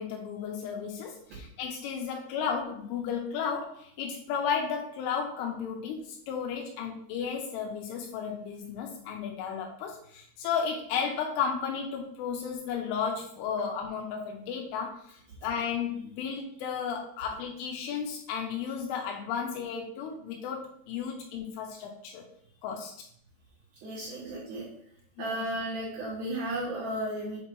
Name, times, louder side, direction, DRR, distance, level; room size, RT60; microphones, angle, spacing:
voice 1, 0.0-22.3 22.6-22.9 25.2-25.4, left 6 dB, 80° left, 1 dB, 3.1 m, -34 dB
voice 2, 23.8-24.7 25.2-27.4, right 1 dB, 65° right, -8 dB, 2.6 m, -34 dB
7.8 x 2.8 x 4.5 m, 0.65 s
omnidirectional pair, 5.7 m